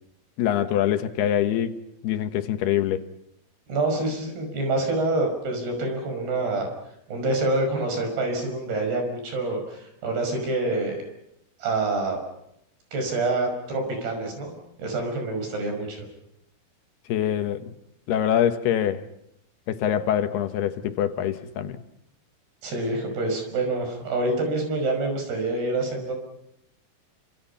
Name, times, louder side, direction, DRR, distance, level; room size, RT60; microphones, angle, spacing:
voice 1, 0.4-1.8 2.0-3.0 17.1-17.7 18.1-19.1 19.7-21.8, left 10 dB, 90° left, 3.4 m, -24 dB
voice 2, 3.7-6.7 7.1-11.0 11.6-12.2 12.9-14.5 14.8-16.0 22.6-26.1, right 2 dB, 85° right, 7.7 m, -26 dB
29.0 x 26.0 x 5.8 m
omnidirectional pair, 4.5 m